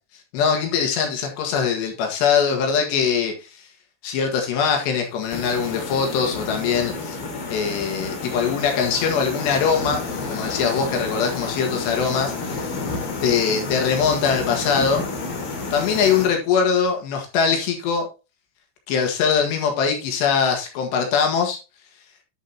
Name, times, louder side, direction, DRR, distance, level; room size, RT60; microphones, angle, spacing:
voice 1, 0.3-3.7 4.0-7.2 7.5-10.0 10.3-12.8 13.2-15.0 15.7-18.1 18.9-21.6, left 6 dB, 85° left, 2 dB, 3.9 m, -22 dB
sound 1, 5.3-16.3, left 3 dB, 40° left, 2.5 m, -30 dB
10.5 x 7.5 x 2.8 m, 0.30 s
omnidirectional pair, 4.8 m